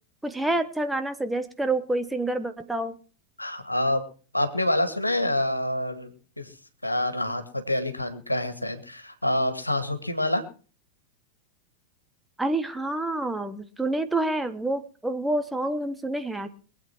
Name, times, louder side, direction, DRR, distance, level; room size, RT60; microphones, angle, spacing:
voice 1, 0.2-2.9 12.4-16.5, right 2 dB, 5° right, 8 dB, 1.3 m, -28 dB
voice 2, 3.4-4.0 4.3-6.1 6.4-6.5 6.8-10.4, left 1 dB, 85° left, 9 dB, 2.0 m, -27 dB
23.5 x 8.6 x 4.5 m, 0.38 s
figure-of-eight pair, 90°, 0 cm